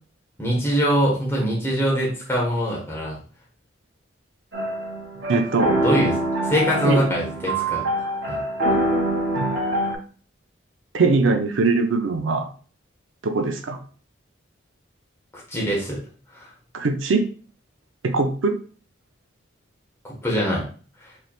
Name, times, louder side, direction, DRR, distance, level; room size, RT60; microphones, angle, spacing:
voice 1, 0.4-3.2 5.8-6.2 6.5-7.8 8.3-8.4 15.5-16.0 16.3-16.5 20.0-20.7 21.0-21.1, equal, 10° left, -4 dB, 1.3 m, -23 dB
sound 1, 4.5-10.0, right 1 dB, 60° right, 1.3 m, -24 dB
voice 2, 5.3-5.8 6.8-7.1 9.4-9.5 10.9-12.5 13.2-13.8 16.7-17.3 18.0-18.6, right 3 dB, 80° right, 6 dB, 0.5 m, -21 dB
4.5 x 3.2 x 2.4 m, 0.40 s
head